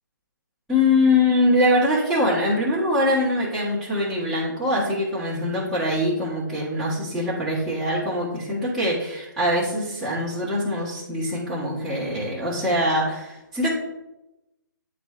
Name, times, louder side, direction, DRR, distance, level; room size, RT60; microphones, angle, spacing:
voice 1, 0.7-13.7, left 1 dB, ahead, -12 dB, 1.4 m, -23 dB
9.8 x 3.3 x 3.2 m, 0.97 s
hypercardioid pair, 150°, 11 cm